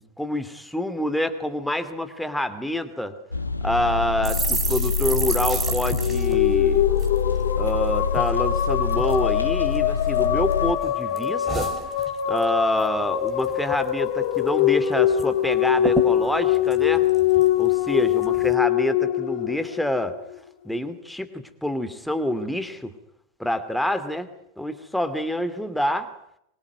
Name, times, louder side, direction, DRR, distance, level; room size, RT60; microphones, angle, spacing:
voice 1, 0.0-3.1 3.6-6.9 7.6-11.7 12.3-17.0 17.6-20.1 20.6-22.9 23.4-24.3 24.6-26.1, left 1 dB, ahead, 10 dB, 2.5 m, -27 dB
sound 1, 3.3-10.7, left 5 dB, 85° left, 1.7 m, -26 dB
Ice melting, 4.2-7.8 8.1-8.3 8.6-9.2 9.7-10.5 10.8-12.5 12.8-13.0 13.3-13.9 14.2-14.3 14.6-15.3 15.5-15.6 15.8-17.7 18.2-18.5, right 4 dB, 15° right, 4.1 m, -32 dB
sound 2, 5.9-20.4, left 11 dB, 50° left, 2.9 m, -23 dB
25.0 x 23.5 x 9.5 m, 0.76 s
figure-of-eight pair, 90°, 0 cm